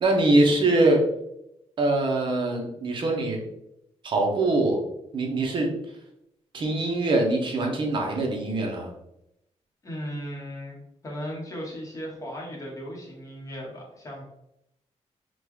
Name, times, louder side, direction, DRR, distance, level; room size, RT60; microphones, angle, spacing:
voice 1, 0.0-1.0 1.8-3.4 4.0-4.8 5.1-6.0 6.5-8.9, right 2 dB, 45° right, 1 dB, 0.8 m, -23 dB
voice 2, 9.8-14.2, equal, 25° left, -2 dB, 1.0 m, -37 dB
3.7 x 2.3 x 3.1 m, 0.81 s
wide cardioid pair, 160°, 12 cm